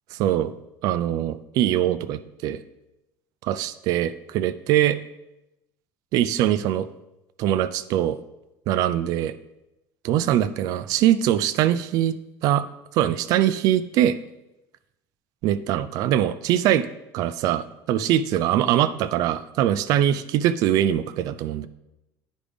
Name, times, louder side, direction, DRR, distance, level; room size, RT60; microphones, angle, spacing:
voice 1, 0.1-0.5 0.8-2.6 3.4-5.0 6.1-6.9 7.4-8.2 8.7-9.3 10.0-12.2 12.4-12.6 12.9-14.2 15.4-16.9 17.1-21.7, right 11 dB, 55° right, 13 dB, 0.4 m, -22 dB
9.9 x 5.0 x 3.4 m, 0.93 s
cardioid pair, 160°, 7 cm